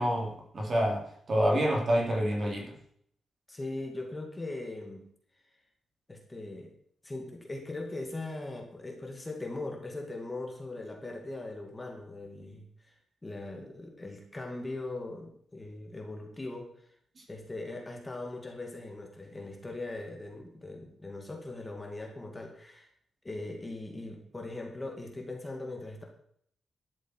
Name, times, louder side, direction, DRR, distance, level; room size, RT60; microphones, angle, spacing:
voice 1, 0.0-2.7, equal, 35° right, 0 dB, 3.5 m, -28 dB
voice 2, 3.5-5.1 6.1-6.7 7.0-12.9 13.2-16.9 17.3-22.9 23.2-26.0, left 2 dB, 15° left, 1 dB, 2.1 m, -40 dB
13.0 x 12.0 x 4.6 m, 0.66 s
wide cardioid pair, 165°, 0 cm